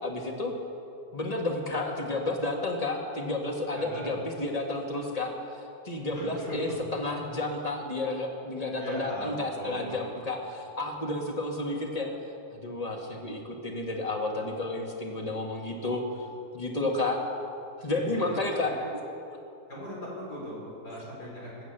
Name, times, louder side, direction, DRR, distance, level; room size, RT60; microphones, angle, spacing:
voice 1, 0.0-0.5 1.1-5.3 5.8-12.1 12.5-16.0 16.5-17.2 17.8-18.7 19.3-19.4, left 2 dB, 25° left, 1 dB, 1.7 m, -31 dB
voice 2, 3.8-4.2 6.1-6.9 8.7-10.0 17.9-18.4 18.7-18.9 19.7-21.6, equal, 90° left, -4 dB, 5.4 m, -39 dB
19.5 x 8.2 x 8.0 m, 2.7 s
omnidirectional pair, 1.7 m